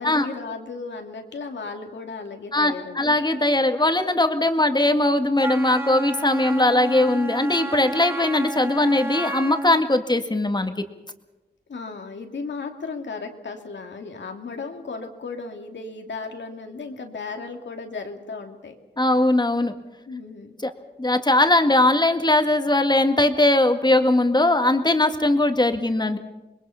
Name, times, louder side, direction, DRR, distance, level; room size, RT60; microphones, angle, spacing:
voice 1, 0.0-3.1 11.7-18.7 20.1-20.5, left 4 dB, 80° left, 4 dB, 2.5 m, -35 dB
voice 2, 2.5-10.7 19.0-19.7 20.6-20.7 21.0-26.2, left 2 dB, 25° left, 7 dB, 2.0 m, -20 dB
Wind instrument woodwind instrument, 5.4-9.9, right 1 dB, 10° right, 0.7 m, -32 dB
26.5 x 21.0 x 5.8 m, 1.1 s
cardioid pair, 60°, 19 cm